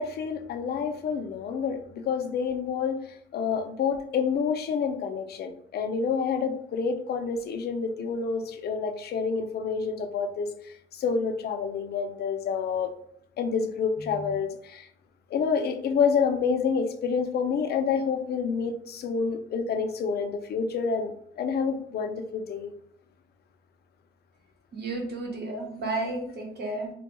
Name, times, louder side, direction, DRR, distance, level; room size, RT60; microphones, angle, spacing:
voice 1, 0.0-12.9 13.4-14.9 15.3-22.7, left 6 dB, 55° left, 0.4 m, -28 dB
voice 2, 24.7-26.9, right 2 dB, 55° right, 0.9 m, -32 dB
2.3 x 2.2 x 2.9 m
cardioid pair, 90°, 20 cm